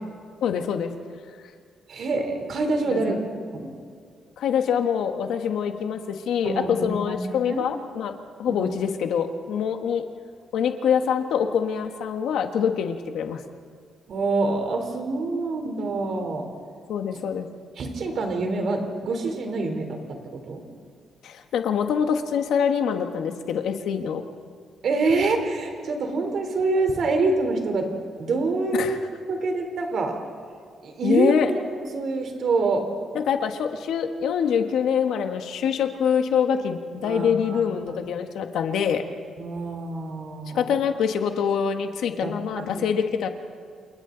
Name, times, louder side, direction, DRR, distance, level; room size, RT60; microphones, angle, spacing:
voice 1, 0.4-0.9 2.8-3.2 4.4-10.0 10.5-13.4 16.9-17.5 21.2-24.2 28.7-29.0 31.0-31.5 33.1-39.0 40.5-43.3, left 7 dB, 80° left, 6 dB, 1.5 m, -25 dB
voice 2, 1.9-3.2 3.5-3.7 6.4-7.6 8.5-8.8 14.1-16.5 17.8-20.2 20.5-20.6 24.8-27.9 28.2-29.0 29.3-30.2 30.8-31.3 31.7-32.9 37.0-37.7 39.4-40.8 42.2-42.8, right 3 dB, 55° right, 4 dB, 3.7 m, -26 dB
28.5 x 28.5 x 4.0 m, 2.1 s
cardioid pair, 150°, 0 cm